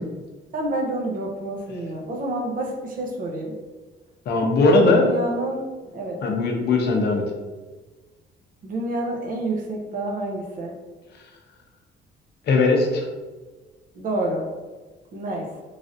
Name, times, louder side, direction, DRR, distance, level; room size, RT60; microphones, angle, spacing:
voice 1, 0.5-3.6 4.6-5.6 5.9-6.2 8.6-10.8 13.9-14.5 15.1-15.6, right 1 dB, 45° right, 0 dB, 0.6 m, -28 dB
voice 2, 4.3-5.1 6.2-7.2 12.5-13.0, left 3 dB, 60° left, 1 dB, 0.6 m, -19 dB
3.2 x 2.5 x 2.5 m, 1.3 s
cardioid pair, 145°, 20 cm